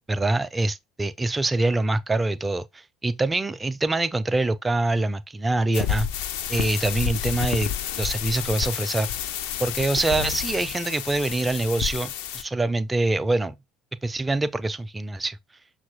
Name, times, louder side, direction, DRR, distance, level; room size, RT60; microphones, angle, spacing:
voice 1, 0.1-6.1 6.5-7.7 8.0-9.1 9.6-13.5 14.0-15.4, right 2 dB, 15° right, 0.3 m, -25 dB
sound 1, 5.7-12.4, left 10 dB, 60° left, 0.3 m, -30 dB
5.8 x 2.3 x 2.6 m
figure-of-eight pair, 60°, 0 cm